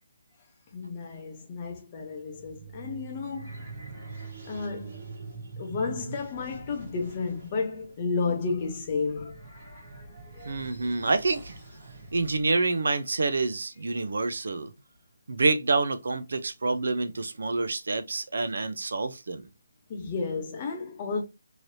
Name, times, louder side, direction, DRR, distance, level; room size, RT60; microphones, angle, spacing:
voice 1, 0.7-3.5 4.5-5.0 5.6-9.3 10.4-10.6 19.9-21.2, left 4 dB, 20° left, 0.7 m, -32 dB
sound 1, 2.1-12.6, right 4 dB, 35° right, 1.4 m, -45 dB
voice 2, 10.4-11.5 12.1-14.7 15.3-19.4, right 3 dB, 70° right, 0.5 m, -27 dB
3.1 x 2.8 x 2.6 m
hypercardioid pair, 175°, 0 cm